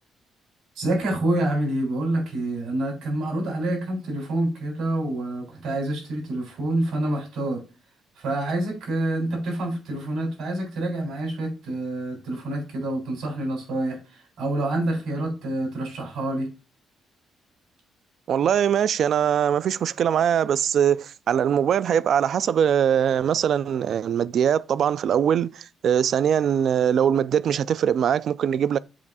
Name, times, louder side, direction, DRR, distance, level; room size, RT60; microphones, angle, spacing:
voice 1, 0.8-7.6 8.2-16.5, right 1 dB, 85° right, 4.0 m, -27 dB
voice 2, 18.3-28.8, right 8 dB, 65° right, 0.3 m, -22 dB
7.4 x 2.6 x 5.5 m
cardioid pair, 90°, 0 cm